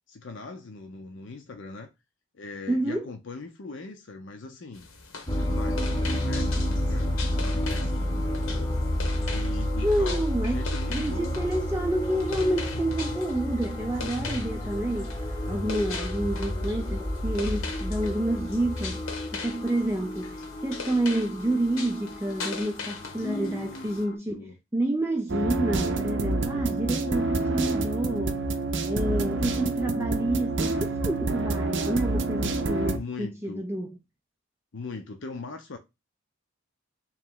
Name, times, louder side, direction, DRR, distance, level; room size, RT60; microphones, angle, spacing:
voice 1, 0.1-1.9 2.3-4.9 5.3-6.5 6.8-8.7 9.3-11.5 23.1-24.0 24.3-24.5 26.5-27.3 28.8-29.3 32.9-33.6 34.7-35.8, left 3 dB, 55° left, 0.6 m, -40 dB
voice 2, 2.7-3.1 9.8-10.6 10.9-28.4 28.8-34.0, right 1 dB, 10° right, 0.3 m, -29 dB
sound 1, 4.7-24.0, left 4 dB, 70° left, 1.0 m, -41 dB
sound 2, 5.3-24.1, left 1 dB, 15° left, 0.7 m, -30 dB
sound 3, 25.3-33.0, right 3 dB, 55° right, 0.6 m, -28 dB
3.3 x 3.0 x 3.7 m
head